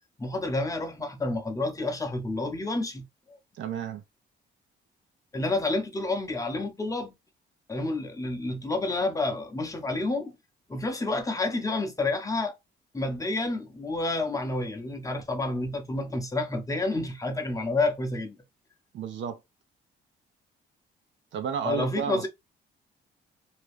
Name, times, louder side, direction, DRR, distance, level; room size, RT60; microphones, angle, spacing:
voice 1, 0.2-3.4 5.3-7.1 7.7-10.4 10.7-12.5 12.9-18.4 21.6-22.3, left 2 dB, 15° left, 0.8 m, -29 dB
voice 2, 3.6-4.0 18.9-19.4 21.3-22.3, right 7 dB, 70° right, 0.8 m, -32 dB
2.8 x 2.3 x 3.3 m
cardioid pair, 90°, 20 cm